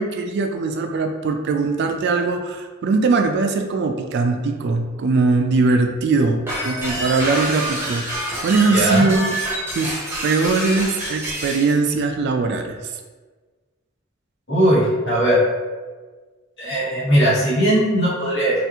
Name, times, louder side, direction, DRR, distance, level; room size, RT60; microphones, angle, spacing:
voice 1, 0.0-9.4 9.7-9.9 10.2-12.9, right 3 dB, 55° right, 5 dB, 0.3 m, -21 dB
sound 1, 6.5-11.7, right 1 dB, 10° right, 0.7 m, -27 dB
voice 2, 8.7-9.1 14.5-15.4 16.6-18.6, right 1 dB, 60° left, -9 dB, 1.5 m, -18 dB
2.8 x 2.4 x 3.4 m, 1.4 s
head